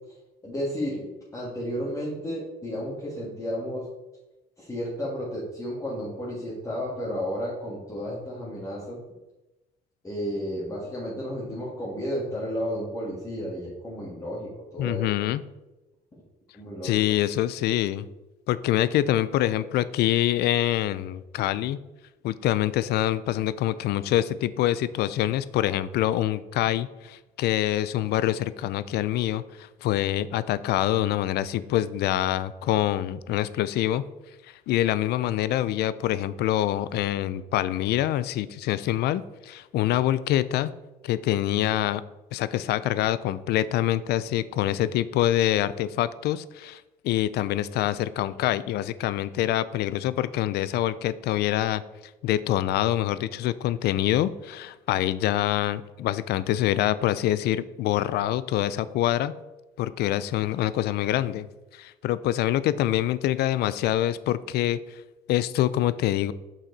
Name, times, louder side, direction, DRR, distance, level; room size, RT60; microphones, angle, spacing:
voice 1, 0.4-3.9 4.6-9.0 10.0-15.0 16.5-17.0, equal, 20° left, -7 dB, 2.1 m, -32 dB
voice 2, 14.8-15.4 16.8-18.1 18.5-21.8 22.2-34.0 34.7-40.7 41.0-42.0 42.3-51.8 52.2-59.3 59.8-61.5 61.7-65.0 65.3-66.3, left 13 dB, 70° left, 16 dB, 0.4 m, -25 dB
5.8 x 5.7 x 4.0 m, 1.0 s
cardioid pair, 110°, 17 cm